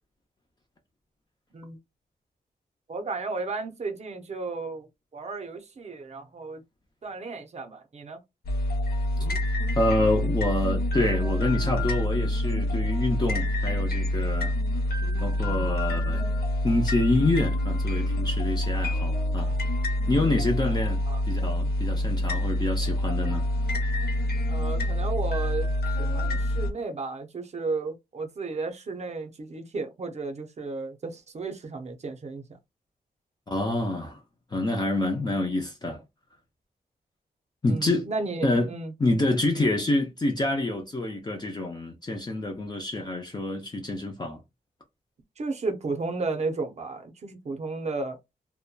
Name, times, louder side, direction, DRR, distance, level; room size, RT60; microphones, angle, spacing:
voice 1, 2.9-4.9 5.1-6.6 7.0-8.2 21.1-21.2 24.5-32.6 37.7-38.9 45.4-48.2, right 3 dB, 45° right, 0.6 m, -33 dB
sound 1, 8.4-26.7, left 1 dB, 75° left, 0.6 m, -26 dB
voice 2, 9.8-14.5 15.2-16.3 16.6-19.5 20.1-21.0 21.2-23.5 33.5-34.2 34.5-36.0 37.6-38.1 38.4-38.7 39.0-44.4, left 2 dB, 25° left, 0.5 m, -27 dB
2.8 x 2.1 x 2.2 m
wide cardioid pair, 115°, 16 cm